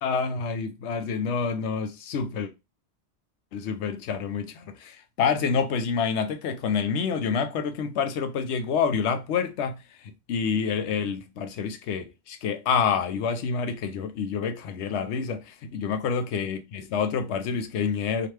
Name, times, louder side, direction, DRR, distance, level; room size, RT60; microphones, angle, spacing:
voice 1, 0.0-2.5 3.5-9.8 10.3-18.3, left 6 dB, 85° left, 0.9 m, -28 dB
2.9 x 2.5 x 3.2 m
omnidirectional pair, 1.1 m